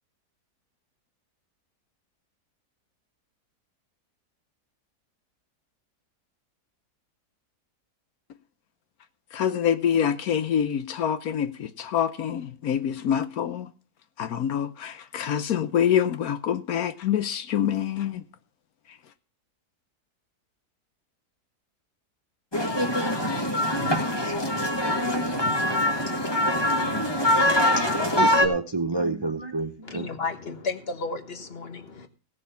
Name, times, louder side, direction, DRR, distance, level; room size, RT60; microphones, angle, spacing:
voice 1, 9.3-13.7 14.2-18.2, left 9 dB, 70° left, 1.2 m, -26 dB
sound 1, 22.5-28.5, left 1 dB, 15° left, 1.5 m, -23 dB
voice 2, 27.7-30.1, right 3 dB, 45° right, 0.3 m, -29 dB
voice 3, 29.8-32.1, left 4 dB, 40° left, 1.4 m, -33 dB
17.0 x 6.6 x 5.6 m
omnidirectional pair, 1.7 m